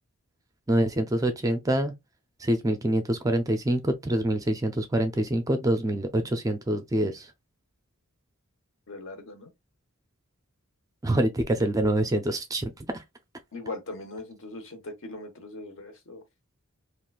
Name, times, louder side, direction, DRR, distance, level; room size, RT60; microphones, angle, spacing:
voice 1, 0.7-1.9 2.4-7.3 11.0-13.0, right 1 dB, 15° right, 0.4 m, -26 dB
voice 2, 8.9-9.5 13.5-16.2, left 2 dB, 60° left, 0.9 m, -40 dB
3.6 x 2.4 x 2.4 m
head